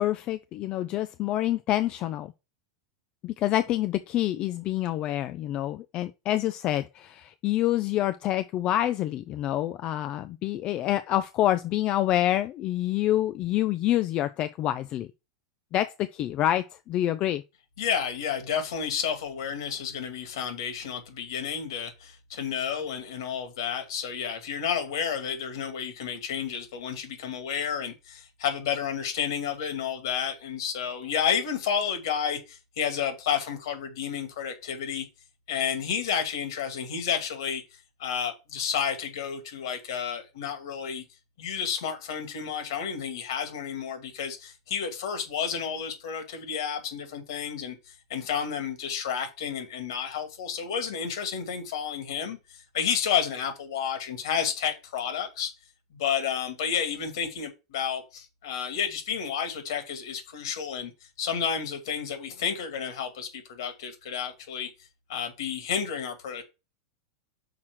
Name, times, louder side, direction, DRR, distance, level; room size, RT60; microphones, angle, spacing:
voice 1, 0.0-2.3 3.2-15.1 15.7-17.4, left 13 dB, 40° left, 0.5 m, -27 dB
voice 2, 17.8-35.1 35.5-37.6 38.0-41.0 41.4-52.4 52.7-55.5 55.9-60.9 61.2-64.7 65.1-66.4, left 7 dB, 70° left, 2.2 m, -31 dB
6.0 x 4.3 x 6.1 m
hypercardioid pair, 100°, 2 cm